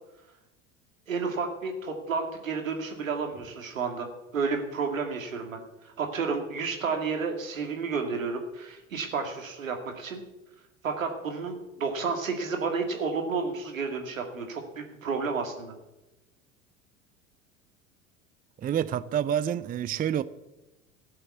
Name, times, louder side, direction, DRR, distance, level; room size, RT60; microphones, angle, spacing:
voice 1, 1.1-4.1 4.3-10.2 10.8-15.7, right 4 dB, 90° right, 2.3 m, -31 dB
voice 2, 18.6-20.2, right 9 dB, 25° right, 0.5 m, -28 dB
13.5 x 7.8 x 8.5 m
hypercardioid pair, 80°, 39 cm